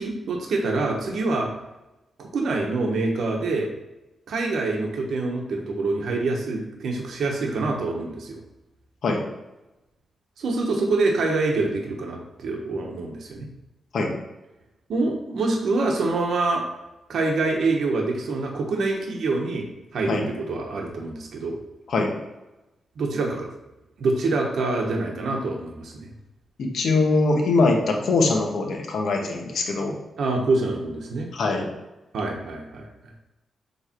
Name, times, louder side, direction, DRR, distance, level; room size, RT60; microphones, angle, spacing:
voice 1, 0.0-1.5 2.2-3.7 4.3-8.3 10.4-13.5 14.9-16.6 17.1-19.7 19.9-21.6 23.0-23.5 24.0-26.1 30.2-31.3 32.1-32.8, right 3 dB, 65° right, 1 dB, 1.1 m, -25 dB
voice 2, 26.6-29.9 31.3-31.7, left 3 dB, 60° left, 1 dB, 1.1 m, -22 dB
7.3 x 3.2 x 4.4 m, 0.99 s
wide cardioid pair, 175°, 0 cm